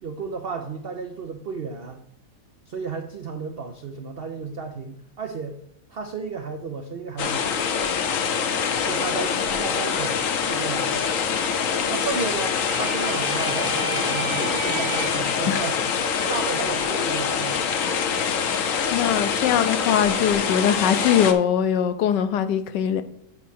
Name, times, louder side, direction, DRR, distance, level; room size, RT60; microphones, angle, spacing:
voice 1, 0.0-2.0 2.7-5.6 5.9-7.5 8.8-11.0 11.9-15.9 16.3-18.2 19.2-19.4, right 4 dB, 85° right, 0.5 m, -33 dB
sound 1, 7.2-21.3, left 6 dB, 60° left, 0.9 m, -25 dB
sound 2, 12.4-15.3, right 4 dB, 55° right, 0.7 m, -32 dB
voice 2, 18.9-23.0, left 9 dB, 80° left, 1.2 m, -21 dB
8.4 x 4.6 x 4.2 m
omnidirectional pair, 1.9 m